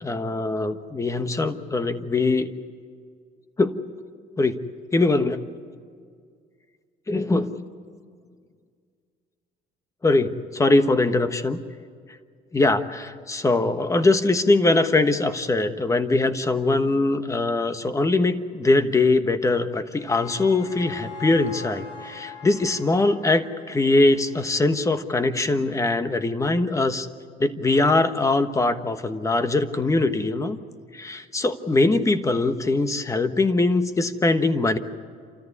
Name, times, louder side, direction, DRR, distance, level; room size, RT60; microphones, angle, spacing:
voice 1, 0.0-2.5 3.6-3.8 4.4-4.6 4.9-5.4 7.1-7.5 10.0-11.6 12.5-27.1 27.4-30.6 30.9-34.8, left 2 dB, 20° left, 10 dB, 1.3 m, -22 dB
sound 1, 19.6-24.7, left 4 dB, 90° left, 7.7 m, -42 dB
28.5 x 14.0 x 9.6 m, 2.1 s
cardioid pair, 110°, 17 cm